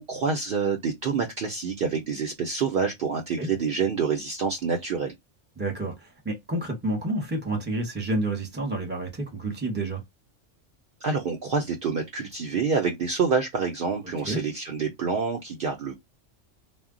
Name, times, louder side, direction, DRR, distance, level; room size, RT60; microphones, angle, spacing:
voice 1, 0.0-5.1 11.0-15.9, right 5 dB, 60° right, 0.6 m, -27 dB
voice 2, 5.6-10.0 14.0-14.4, right 2 dB, 10° right, 0.7 m, -29 dB
2.2 x 2.0 x 3.6 m
omnidirectional pair, 1.3 m